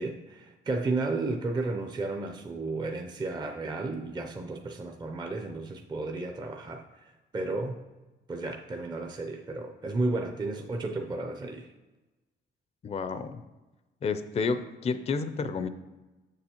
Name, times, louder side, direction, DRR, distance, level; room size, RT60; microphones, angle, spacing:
voice 1, 0.0-7.0 7.3-7.8 8.3-11.7, right 2 dB, 20° right, 4 dB, 0.5 m, -33 dB
voice 2, 12.8-13.4 14.0-15.7, left 5 dB, 30° left, 11 dB, 0.4 m, -30 dB
7.4 x 6.8 x 2.9 m, 1.1 s
cardioid pair, 90°, 20 cm